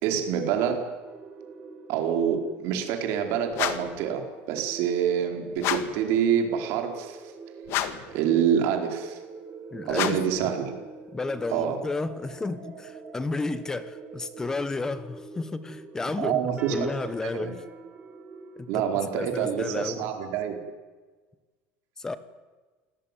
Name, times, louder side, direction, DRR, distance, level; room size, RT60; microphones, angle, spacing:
voice 1, 0.0-0.8 1.9-4.2 4.5-7.2 8.1-9.2 9.8-10.8 11.5-11.8 16.2-17.5 18.7-20.6, right 8 dB, 60° right, 4 dB, 4.8 m, -26 dB
sound 1, 1.0-18.7, right 4 dB, 25° right, 3.1 m, -45 dB
sound 2, 3.5-4.0 5.6-6.0 7.7-8.2 9.9-10.4, left 11 dB, 50° left, 1.9 m, -29 dB
voice 2, 9.7-10.2 11.1-16.4 16.7-17.6 18.6-18.8 19.1-20.1 22.0-22.2, left 3 dB, 10° left, 14 dB, 1.3 m, -32 dB
28.0 x 18.5 x 9.4 m, 1.3 s
cardioid pair, 165°, 5 cm